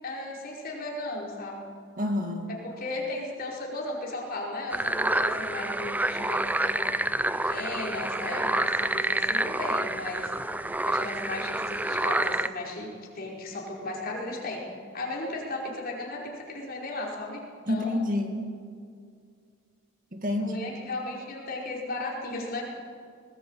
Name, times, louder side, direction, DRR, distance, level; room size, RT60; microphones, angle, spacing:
voice 1, 0.0-1.6 2.5-6.9 7.4-10.3 10.8-14.6 14.9-17.4 17.7-18.0 20.4-22.6, left 2 dB, 45° left, -2 dB, 4.9 m, -35 dB
voice 2, 2.0-2.5 17.7-18.5 20.1-20.6, left 1 dB, 40° right, 3 dB, 2.2 m, -28 dB
sound 1, 4.7-12.5, right 1 dB, 10° right, 0.5 m, -28 dB
20.0 x 19.5 x 9.0 m, 2.3 s
head